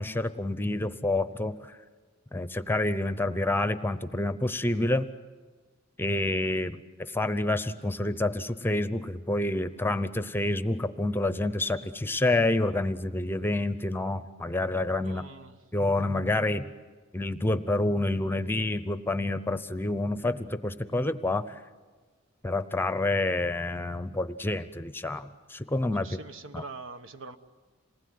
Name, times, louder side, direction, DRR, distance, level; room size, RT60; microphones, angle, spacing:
voice 1, 0.0-1.8 2.3-5.1 6.0-15.2 15.7-16.7 17.1-21.6 22.4-26.2 26.5-26.7, left 2 dB, 10° left, 12 dB, 0.7 m, -28 dB
voice 2, 15.0-15.5 26.0-27.4, right 3 dB, 75° right, 9 dB, 1.2 m, -43 dB
27.5 x 19.5 x 9.5 m, 1.4 s
head